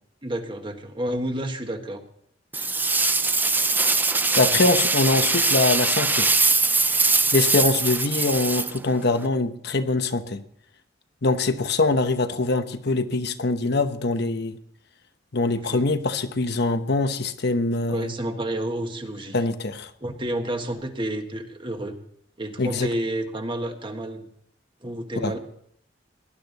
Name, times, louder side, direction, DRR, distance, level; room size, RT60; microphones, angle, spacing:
voice 1, 0.2-2.0 15.6-15.8 17.9-19.4 20.0-22.0 22.4-24.3 24.8-25.4, right 1 dB, 25° right, 5 dB, 1.6 m, -30 dB
sound 1, 2.5-9.3, right 3 dB, 10° right, 0.5 m, -22 dB
voice 2, 4.4-6.3 7.3-10.4 11.2-14.6 15.3-18.1 19.3-19.9 22.6-22.9 25.2-25.3, left 3 dB, 60° left, 9 dB, 1.0 m, -23 dB
18.5 x 11.5 x 4.0 m, 0.66 s
head